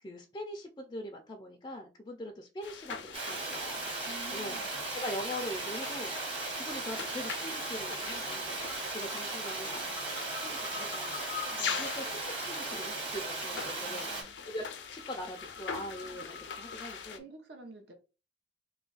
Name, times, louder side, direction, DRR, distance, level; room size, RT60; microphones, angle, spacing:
voice 1, 0.0-3.9 4.3-4.6 4.9-6.2 6.6-10.1 10.4-11.2 11.8-17.3, left 1 dB, 20° left, 2 dB, 0.4 m, -42 dB
sound 1, 2.6-17.2, left 6 dB, 85° left, 0.5 m, -42 dB
Water, 3.1-14.2, right 3 dB, 30° right, 1.1 m, -37 dB
voice 2, 4.1-4.7 11.5-11.8 13.8-14.4 17.1-17.9, right 1 dB, 65° right, 5 dB, 0.8 m, -50 dB
3.1 x 2.4 x 3.8 m, 0.31 s
head